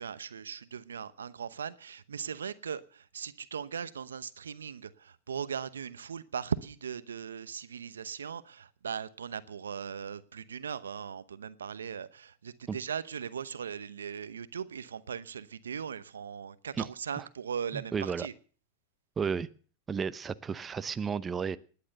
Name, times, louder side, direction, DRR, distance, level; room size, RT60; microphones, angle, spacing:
voice 1, 0.0-18.3, right 7 dB, 85° right, 16 dB, 0.9 m, -39 dB
voice 2, 17.7-18.3 19.2-19.5 19.9-21.6, right 6 dB, 20° right, 14 dB, 0.8 m, -33 dB
18.5 x 10.5 x 6.5 m, 0.41 s
hypercardioid pair, 105°, 0 cm